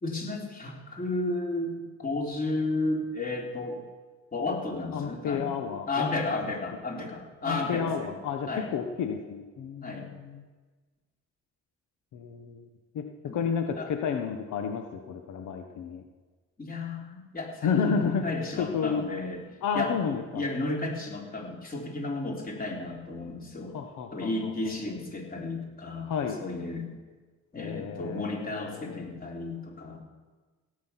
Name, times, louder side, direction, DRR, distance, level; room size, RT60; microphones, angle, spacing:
voice 1, 0.0-3.8 4.3-5.5 5.9-8.1 8.5-8.7 9.8-10.1 13.3-13.4 13.8-13.9 16.6-19.4 19.7-23.7 24.1-26.1 26.4-26.9 27.5-30.0, left 2 dB, 30° left, 0 dB, 3.6 m, -33 dB
voice 2, 4.9-6.1 6.4-6.5 7.5-10.4 12.1-12.7 12.9-13.1 13.3-16.0 17.6-18.3 18.6-19.0 19.6-20.5 23.7-24.5 26.1-26.4 27.6-29.0, left 6 dB, 80° left, 5 dB, 1.2 m, -31 dB
16.5 x 8.7 x 5.8 m, 1.3 s
cardioid pair, 90°, 30 cm